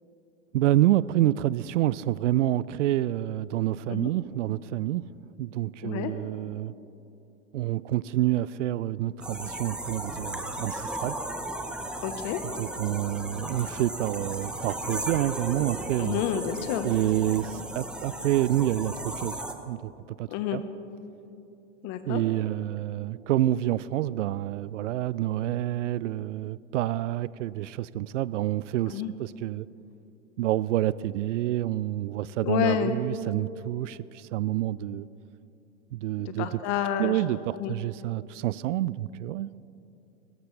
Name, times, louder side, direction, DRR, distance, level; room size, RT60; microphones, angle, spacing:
voice 1, 0.5-5.1 5.4-6.7 7.5-11.2 12.4-16.2 16.8-19.9 20.2-20.6 22.1-29.7 30.4-35.1 35.9-36.6 37.0-39.5, right 14 dB, 75° right, 20 dB, 0.5 m, -28 dB
sound 1, 9.2-19.5, right 1 dB, ahead, 0.9 m, -36 dB
voice 2, 12.0-12.4 16.0-16.9 20.3-20.6 21.8-22.2 28.9-29.1 32.4-33.0 36.2-37.2 37.5-37.7, left 10 dB, 45° left, 9 dB, 1.2 m, -29 dB
22.0 x 13.5 x 3.3 m, 2.8 s
hypercardioid pair, 105°, 37 cm